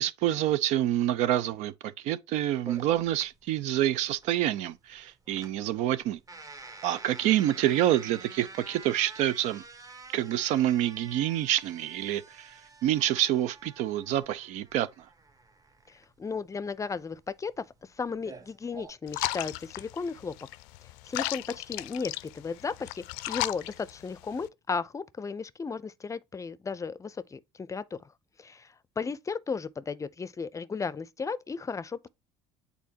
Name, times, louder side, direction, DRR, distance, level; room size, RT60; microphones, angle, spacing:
voice 1, 0.0-6.2 6.8-9.6 10.1-12.5 12.8-14.9, right 12 dB, 65° right, 0.6 m, -27 dB
sound 1, 2.7-18.9, right 3 dB, 25° right, 1.3 m, -49 dB
voice 2, 15.9-17.6 18.0-20.3 21.0-28.1 28.4-32.1, left 5 dB, 25° left, 0.6 m, -35 dB
sound 2, 19.1-24.5, left 19 dB, 70° left, 0.5 m, -36 dB
8.2 x 4.0 x 2.8 m
hypercardioid pair, 70°, 13 cm